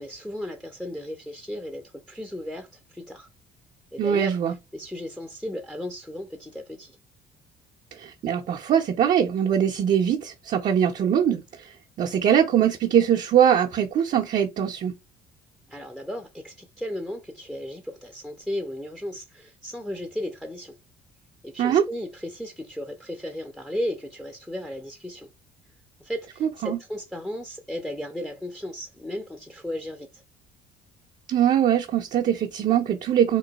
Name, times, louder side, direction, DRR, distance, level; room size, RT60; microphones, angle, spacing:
voice 1, 0.0-1.8 2.1-3.3 3.9-7.0 15.7-20.7 21.4-25.3 26.0-30.2, equal, ahead, 0.5 m, -35 dB
voice 2, 4.0-4.5 8.0-14.9 21.6-21.8 26.4-26.8 31.3-33.4, right 9 dB, 45° right, 0.5 m, -22 dB
2.9 x 2.1 x 3.9 m
cardioid pair, 110°, 17 cm